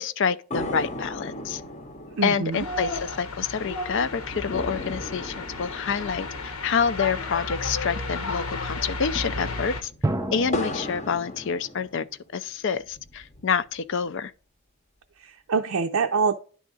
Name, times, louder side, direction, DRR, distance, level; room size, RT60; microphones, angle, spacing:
voice 1, 0.0-1.6 2.2-9.9 10.3-12.1 12.3-14.3, left 6 dB, 55° left, 0.4 m, -27 dB
sound 1, 0.5-8.1 8.4-8.5 8.9-12.3 12.8-13.8, left 1 dB, 30° left, 0.7 m, -37 dB
voice 2, 2.2-2.6 15.2-16.3, right 5 dB, 70° right, 0.5 m, -25 dB
sound 2, 2.5-9.8, left 2 dB, 85° left, 1.1 m, -33 dB
sound 3, 4.0-5.3 10.0-11.9, right 1 dB, 15° right, 0.4 m, -33 dB
10.5 x 3.6 x 3.8 m
head